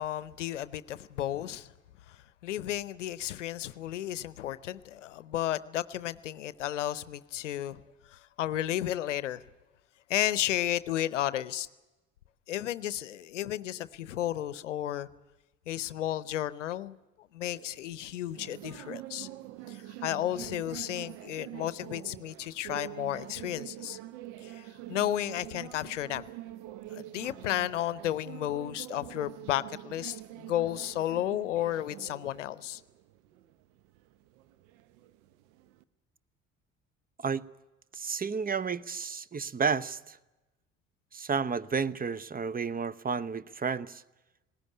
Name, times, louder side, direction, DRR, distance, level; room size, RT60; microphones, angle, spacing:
voice 1, 0.0-1.7 2.1-2.2 2.4-7.8 8.1-9.4 10.1-11.7 12.5-15.1 15.7-19.3 19.7-24.0 24.4-26.3 26.9-32.8, left 12 dB, 90° left, 0.7 m, -33 dB
sound 1, 17.4-35.8, right 15 dB, 75° right, 0.9 m, -45 dB
voice 2, 37.9-40.2 41.1-44.0, right 5 dB, 25° right, 0.8 m, -31 dB
19.5 x 18.5 x 9.8 m
hypercardioid pair, 55°, 36 cm